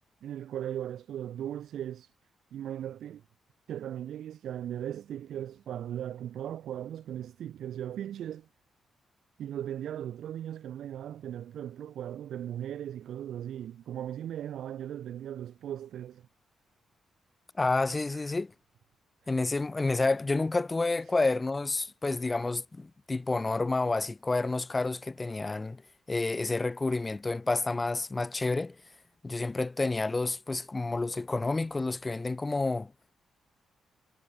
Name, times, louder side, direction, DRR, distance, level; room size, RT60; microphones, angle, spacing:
voice 1, 0.2-2.1 2.5-3.2 3.7-8.5 9.4-16.3 18.1-18.3, right 10 dB, 75° right, 4.5 m, -38 dB
voice 2, 17.6-18.5 19.3-25.8 26.1-28.7 29.2-33.1, left 3 dB, 20° left, 1.5 m, -29 dB
cardioid pair, 140°, 0 cm